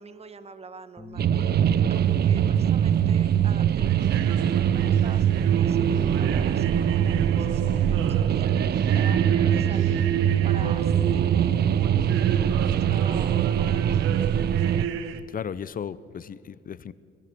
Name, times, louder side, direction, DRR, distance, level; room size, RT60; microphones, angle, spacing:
voice 1, 0.0-1.5 1.9-10.1 10.4-14.2, right 4 dB, 30° right, 12 dB, 1.2 m, -44 dB
sound 1, 1.0-7.2, left 3 dB, 10° left, 2.1 m, -53 dB
sound 2, 1.2-14.9, right 9 dB, 55° right, 0.6 m, -23 dB
sound 3, 1.9-15.2, right 7 dB, 90° right, 1.2 m, -31 dB
voice 2, 15.3-16.9, left 8 dB, 45° left, 17 dB, 0.8 m, -36 dB
21.5 x 13.5 x 9.5 m, 2.6 s
cardioid pair, 90°, 20 cm